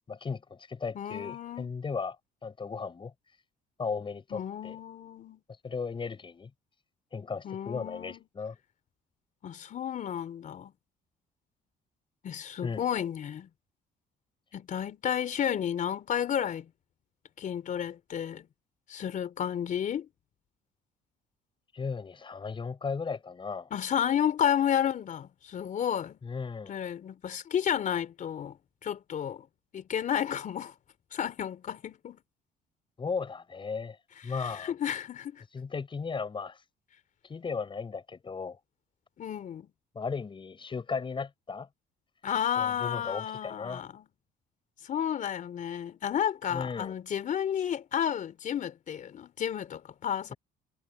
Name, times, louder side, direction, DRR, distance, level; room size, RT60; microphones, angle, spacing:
voice 1, 0.1-2.2 2.4-3.1 3.8-4.8 5.6-6.5 7.1-8.6 12.6-12.9 21.7-23.7 26.2-26.7 33.0-34.0 34.2-34.7 35.5-36.6 37.2-38.6 39.9-41.7 42.6-43.8 46.5-46.9 50.3-50.4, left 5 dB, 30° left, 7.2 m, -36 dB
voice 2, 1.0-1.7 4.3-5.4 7.4-8.2 9.4-10.7 12.2-13.5 14.5-16.7 17.4-18.5 18.9-20.1 23.7-26.2 26.7-29.5 29.7-30.7 31.1-32.2 34.4-35.4 39.2-39.7 42.2-44.1 44.8-50.3, left 9 dB, 50° left, 3.6 m, -32 dB
cardioid pair, 110°, 17 cm